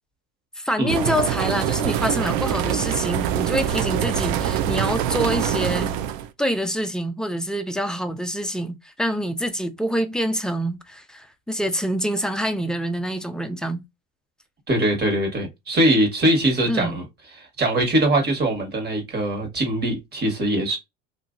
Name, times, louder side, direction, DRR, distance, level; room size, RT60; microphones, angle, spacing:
voice 1, 0.6-5.9 6.4-13.8 16.7-17.0, equal, ahead, 0.3 m, -26 dB
sound 1, 0.9-6.3, right 10 dB, 80° right, 0.5 m, -24 dB
voice 2, 14.7-17.0 17.4-20.8, right 1 dB, 30° right, 1.4 m, -22 dB
2.8 x 2.6 x 2.5 m
supercardioid pair, 115°, 31 cm